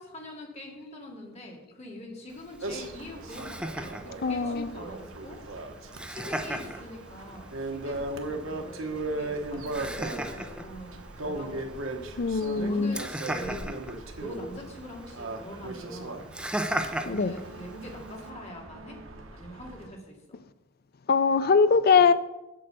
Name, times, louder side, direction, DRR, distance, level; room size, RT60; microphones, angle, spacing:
voice 1, 0.0-5.4 6.0-12.0 12.5-13.7 14.2-16.3 17.0-19.0 19.3-20.4, equal, 35° left, 2.3 m, -43 dB
Laughter, 2.3-18.3, right 1 dB, 5° right, 0.6 m, -39 dB
sound 1, 2.6-19.9, right 2 dB, 85° right, 1.2 m, -38 dB
voice 2, 4.2-4.7 12.2-12.9 17.1-17.3 21.1-22.1, left 5 dB, 50° left, 0.4 m, -22 dB
7.7 x 7.6 x 6.8 m
head